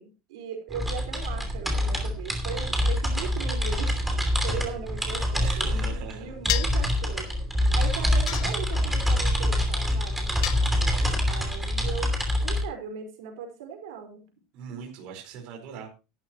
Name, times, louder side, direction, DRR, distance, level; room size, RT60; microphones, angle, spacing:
voice 1, 0.0-7.4 7.7-10.3 11.3-12.1 12.4-14.2, right 7 dB, 75° right, 4 dB, 4.8 m, -38 dB
sound 1, 0.7-12.6, left 1 dB, 5° right, 2.8 m, -26 dB
voice 2, 5.4-6.3 10.8-11.2 14.5-16.0, right 7 dB, 40° right, 1 dB, 4.6 m, -41 dB
sound 2, 6.5-6.9 8.3-9.0 10.4-11.2, left 16 dB, 80° left, 0.9 m, -31 dB
14.0 x 12.0 x 3.1 m, 0.29 s
supercardioid pair, 180°, 3 cm